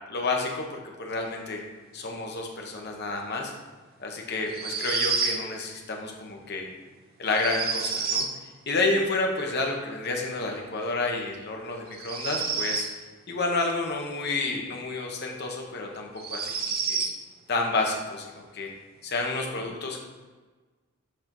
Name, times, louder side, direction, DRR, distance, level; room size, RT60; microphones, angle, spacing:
voice 1, 0.1-0.6 1.0-1.6 1.9-3.5 4.0-6.6 7.2-8.2 8.7-12.8 13.3-17.0 17.5-18.3 18.5-18.7 19.0-20.1, left 3 dB, 50° left, 1 dB, 1.0 m, -30 dB
sound 1, 4.5-5.4 7.3-8.3 11.9-13.0 15.1-15.2 16.2-17.2, right 5 dB, 45° right, 0.6 m, -29 dB
6.6 x 4.5 x 3.9 m, 1.3 s
head